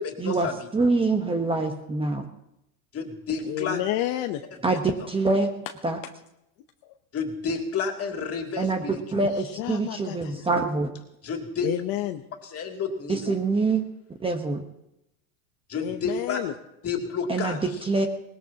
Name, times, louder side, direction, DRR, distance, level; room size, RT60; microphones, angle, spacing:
voice 1, 0.0-0.7 2.1-2.3 2.9-3.8 4.8-5.1 7.1-9.2 11.2-11.7 12.4-13.4 15.7-16.4 16.8-17.9, left 5 dB, 35° left, 1 dB, 2.8 m, -31 dB
voice 2, 0.7-2.2 4.6-5.5 5.8-6.0 8.6-8.8 9.1-10.9 13.1-13.8 14.2-14.6 17.3-17.6 17.9-18.1, right 3 dB, 15° right, 5 dB, 1.1 m, -25 dB
voice 3, 1.3-1.7 3.5-4.4 6.8-6.9 9.2-10.5 11.6-12.2 15.8-16.5, left 13 dB, 50° left, 5 dB, 0.9 m, -31 dB
20.5 x 19.5 x 2.9 m, 0.84 s
supercardioid pair, 125°, 43 cm